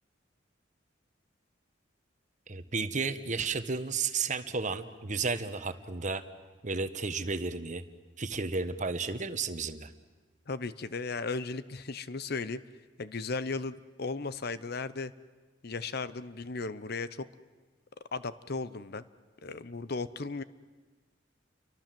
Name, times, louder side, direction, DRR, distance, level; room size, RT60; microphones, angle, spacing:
voice 1, 2.5-6.2 6.6-7.8 8.2-9.9, right 4 dB, 40° right, 10 dB, 1.2 m, -33 dB
voice 2, 10.5-12.6 13.0-15.1 15.6-17.3 18.1-19.0 19.4-20.4, left 3 dB, 55° left, 15 dB, 0.8 m, -36 dB
29.0 x 24.0 x 7.7 m, 1.4 s
head